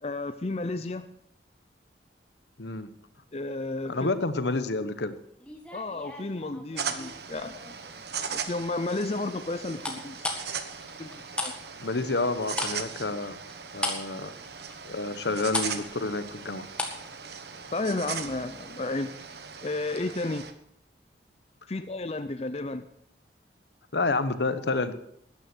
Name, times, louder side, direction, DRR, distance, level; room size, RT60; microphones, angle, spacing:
voice 1, 0.0-1.1 3.3-4.1 5.7-7.7 8.3-10.4 11.0-11.1 11.4-11.5 17.7-19.3 19.6-20.5 21.7-22.8, left 2 dB, 35° left, 9 dB, 0.6 m, -32 dB
voice 2, 2.6-2.9 3.9-5.2 11.8-13.4 13.7-14.3 14.8-16.7 23.9-24.9, left 3 dB, 75° left, 12 dB, 1.1 m, -29 dB
sound 1, 5.4-7.1 7.6-8.0 9.8-11.6 11.8-17.1 17.3-17.5, left 2 dB, 5° left, 1.7 m, -35 dB
sound 2, 6.8-20.5, right 6 dB, 65° right, 1.2 m, -39 dB
13.5 x 9.9 x 6.1 m, 0.71 s
head